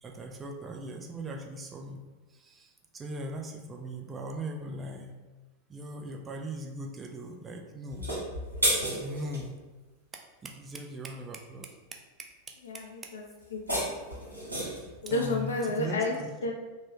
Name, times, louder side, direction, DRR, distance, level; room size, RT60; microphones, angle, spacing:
voice 1, 0.0-2.0 2.3-5.1 5.7-8.1 9.0-9.6 10.1-13.1 15.1-16.5, right 1 dB, 20° right, 1 dB, 0.4 m, -40 dB
sound 1, 7.9-9.4 13.4-14.9, equal, 85° right, 1.1 m, -31 dB
voice 2, 12.6-13.8 15.0-16.1 16.4-16.5, left 2 dB, 65° left, 1 dB, 0.4 m, -31 dB
3.1 x 2.2 x 2.9 m, 1.2 s
figure-of-eight pair, 90°, 0 cm